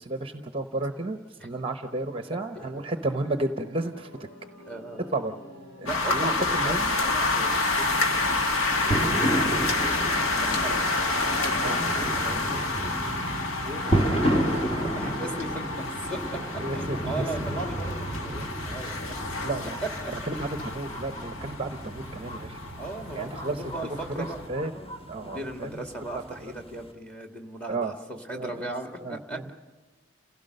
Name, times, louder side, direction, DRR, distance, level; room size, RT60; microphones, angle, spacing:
voice 1, 0.0-4.3 5.1-5.3 5.8-7.0 11.6-11.8 13.8-13.9 16.6-17.3 19.0-19.1 19.4-19.8 20.1-22.6 23.1-23.6 24.0-24.7 25.1-25.9 26.1-26.5 27.7-28.0 28.3-28.7 29.0-29.5, right 2 dB, 25° right, 7 dB, 0.8 m, -33 dB
voice 2, 2.3-2.7 4.6-5.0 5.8-9.8 10.3-10.9 11.2-13.0 13.6-14.6 14.9-16.4 16.7-19.2 19.8-20.1 22.8-24.4 24.6-25.0 25.2-29.5, right 2 dB, 5° left, 3 dB, 2.1 m, -38 dB
sound 1, 2.4-16.0, equal, 65° left, 5.7 m, -45 dB
sound 2, 5.9-24.5, left 2 dB, 85° left, 1.7 m, -29 dB
sound 3, 8.9-26.9, right 1 dB, 30° left, 2.0 m, -32 dB
30.0 x 16.5 x 6.6 m, 1.3 s
head